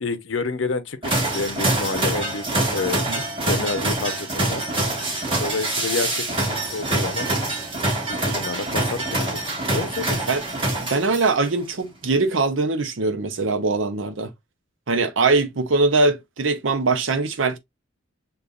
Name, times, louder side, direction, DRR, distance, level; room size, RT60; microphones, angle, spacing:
voice 1, 0.0-3.0 3.5-4.6 5.4-7.3 8.1-9.4 9.7-10.3, left 4 dB, 70° left, 0.7 m, -29 dB
sound 1, 1.0-11.5, right 2 dB, 25° right, 1.5 m, -25 dB
voice 2, 10.8-14.3 14.9-17.6, right 3 dB, 75° right, 0.7 m, -22 dB
6.7 x 2.4 x 2.3 m
head